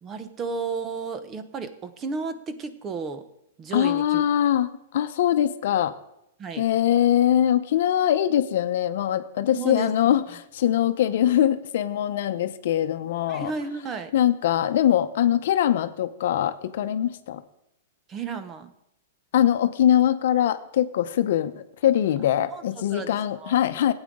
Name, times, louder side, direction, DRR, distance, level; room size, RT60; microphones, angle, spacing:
voice 1, 0.0-3.3 3.6-4.2 6.4-6.7 9.5-10.2 13.3-14.1 18.1-18.7 22.5-23.6, right 5 dB, 20° right, 10 dB, 0.8 m, -33 dB
voice 2, 3.7-5.9 6.6-13.5 14.1-17.4 19.3-21.5 21.8-23.9, left 11 dB, 60° left, 10 dB, 0.8 m, -22 dB
15.5 x 8.9 x 3.7 m, 0.82 s
hypercardioid pair, 150°, 0 cm